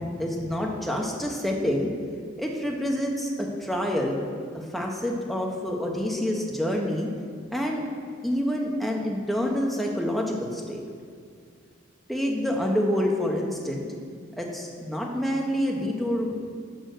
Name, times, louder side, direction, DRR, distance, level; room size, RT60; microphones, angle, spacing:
voice 1, 0.0-1.9 2.4-4.2 4.5-7.1 7.5-7.8 8.2-10.8 12.1-13.9 14.4-16.4, equal, ahead, -1 dB, 0.7 m, -27 dB
6.5 x 5.3 x 6.4 m, 2.2 s
head